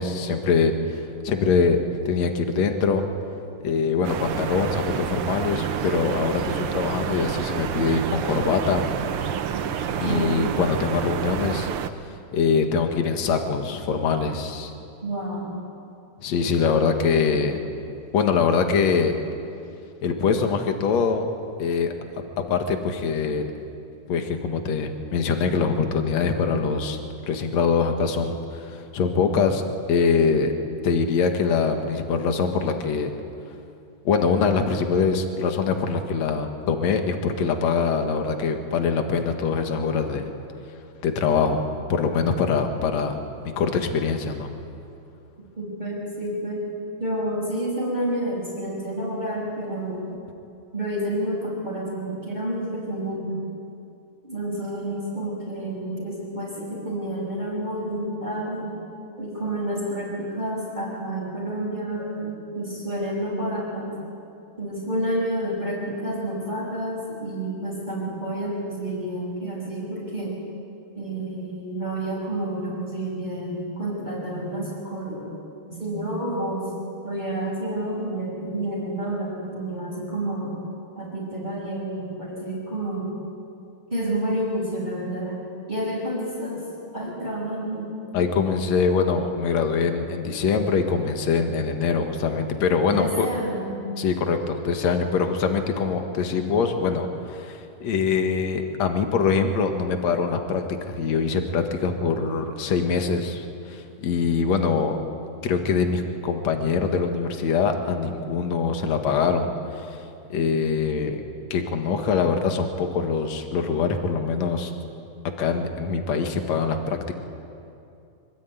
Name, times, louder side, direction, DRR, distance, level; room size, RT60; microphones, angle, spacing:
voice 1, 0.0-1.8 2.1-3.1 3.6-8.9 10.0-11.7 12.3-14.7 16.2-17.6 18.1-19.1 20.0-21.3 21.6-21.9 22.4-23.5 24.1-27.0 27.3-30.5 30.8-33.1 34.0-40.3 41.0-43.2 43.6-44.5 88.1-93.3 94.0-105.0 105.4-110.0 110.3-111.2 111.5-114.7 115.4-117.1, left 5 dB, 65° left, 5 dB, 2.9 m, -23 dB
sound 1, 4.0-11.9, right 8 dB, 60° right, 1.6 m, -28 dB
voice 2, 10.0-10.4 15.0-15.5 45.6-46.6 47.0-50.0 50.7-53.4 54.2-58.8 59.2-64.0 64.6-70.4 70.9-75.4 75.7-76.7 77.0-80.6 81.0-83.1 83.9-85.4 85.7-86.7 86.9-87.9 92.8-93.7, right 1 dB, 15° right, -3 dB, 5.9 m, -29 dB
25.5 x 24.0 x 9.6 m, 2.6 s
omnidirectional pair, 3.5 m